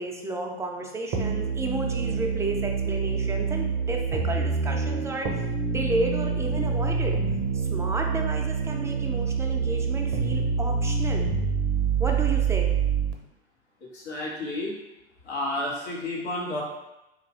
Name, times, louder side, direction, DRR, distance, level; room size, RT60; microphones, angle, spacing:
voice 1, 0.0-7.2 7.5-11.3 12.0-12.7, right 2 dB, 10° right, 1 dB, 0.5 m, -32 dB
sound 1, 1.1-13.1, right 5 dB, 50° right, 0.7 m, -26 dB
voice 2, 13.8-14.8 15.2-16.6, left 1 dB, 85° left, -4 dB, 1.1 m, -31 dB
3.0 x 2.5 x 3.6 m, 0.95 s
hypercardioid pair, 85°, 32 cm